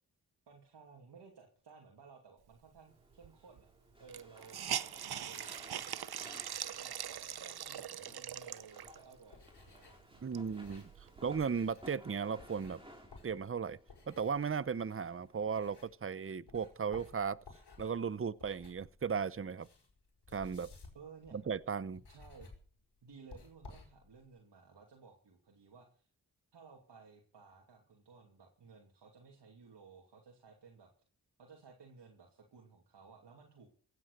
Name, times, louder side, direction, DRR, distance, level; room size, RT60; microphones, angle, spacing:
voice 1, 0.5-3.7 4.0-4.6 4.9-7.0 7.4-10.5 20.9-21.4 22.1-22.5 23.0-26.1 26.5-30.9 31.4-33.7, right 5 dB, 90° right, 2.7 m, -57 dB
sound 1, 2.9-15.6, equal, 15° right, 5.2 m, -59 dB
Hiss, 3.2-3.3 3.6-3.7 4.1-9.1 9.7-9.8 10.1-11.5, right 9 dB, 65° right, 0.7 m, -42 dB
sound 2, 8.8-16.1 16.5-24.3, left 4 dB, 75° left, 5.4 m, -57 dB
voice 2, 10.2-10.9 11.2-12.8 13.2-13.8 14.1-17.4 17.8-19.7 20.3-20.7 21.3-22.0, right 6 dB, 35° right, 0.7 m, -36 dB
16.0 x 9.6 x 6.6 m
cardioid pair, 55°, 40 cm